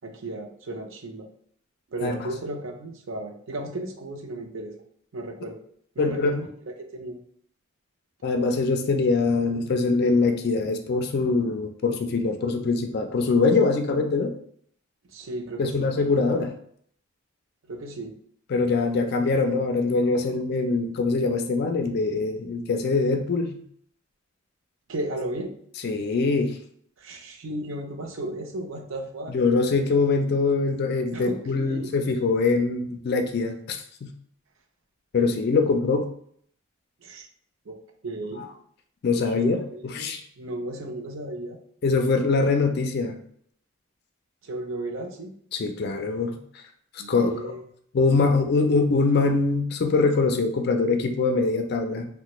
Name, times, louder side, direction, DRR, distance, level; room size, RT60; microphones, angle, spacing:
voice 1, 0.0-1.3 1.9-4.8 5.1-5.6 6.0-7.2 15.1-15.9 17.7-18.1 24.9-25.5 27.0-29.3 31.1-31.9 37.0-37.3 37.7-38.5 39.4-41.6 44.4-45.3 47.0-47.6, right 1 dB, 70° right, 3 dB, 0.5 m, -35 dB
voice 2, 6.0-6.3 8.2-14.3 15.6-16.5 18.5-23.6 25.8-26.5 29.3-34.1 35.1-36.1 39.0-40.2 41.8-43.1 45.5-46.4 47.1-47.5 47.9-52.1, left 3 dB, 50° left, 6 dB, 0.3 m, -23 dB
3.2 x 2.1 x 2.9 m, 0.64 s
head